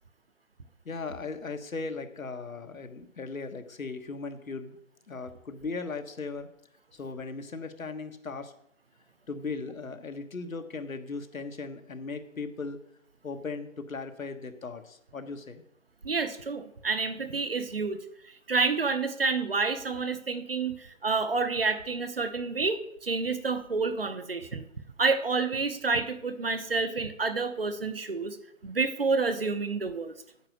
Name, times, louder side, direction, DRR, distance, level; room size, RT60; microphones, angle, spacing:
voice 1, 0.8-4.8 5.1-6.5 6.9-8.5 9.3-12.8 13.2-15.6, left 4 dB, 80° left, 8 dB, 1.4 m, -37 dB
voice 2, 16.0-18.0 18.2-24.7 25.0-28.4 28.6-30.1, right 4 dB, 45° right, 11 dB, 0.9 m, -29 dB
8.9 x 7.6 x 6.4 m, 0.76 s
figure-of-eight pair, 175°, 40 cm